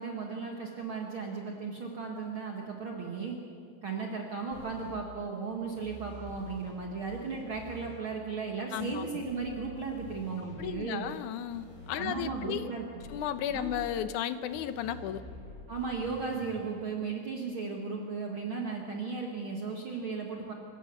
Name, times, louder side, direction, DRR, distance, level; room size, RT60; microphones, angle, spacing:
voice 1, 0.0-3.4 3.8-11.1 11.9-13.1 13.5-13.7 15.7-20.5, right 4 dB, 50° right, 0 dB, 2.1 m, -36 dB
sound 1, 4.5-4.9 5.8-6.7 7.0-8.0 8.8-10.9 11.5-12.6 13.0-14.0 14.5-16.5, left 2 dB, 50° left, 7.0 m, -48 dB
voice 2, 8.7-9.0 10.6-12.7 13.1-15.2, left 10 dB, 80° left, 12 dB, 2.3 m, -34 dB
27.5 x 15.5 x 7.0 m, 2.4 s
omnidirectional pair, 3.6 m